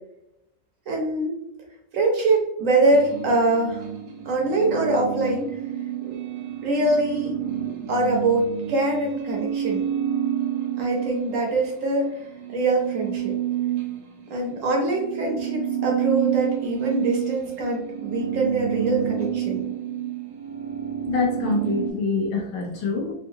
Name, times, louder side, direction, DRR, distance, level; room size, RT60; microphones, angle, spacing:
voice 1, 0.9-1.3 1.9-3.9 4.2-5.6 6.1-6.2 6.6-7.4 7.9-9.8 10.8-12.2 12.5-13.4 14.3-19.7, right 2 dB, 60° right, 0 dB, 0.8 m, -23 dB
sound 1, 2.9-11.8 12.1-21.9, right 10 dB, 80° right, 1.2 m, -29 dB
voice 2, 21.1-23.1, left 4 dB, 75° left, 0 dB, 1.3 m, -25 dB
3.6 x 2.4 x 2.6 m, 0.83 s
omnidirectional pair, 2.0 m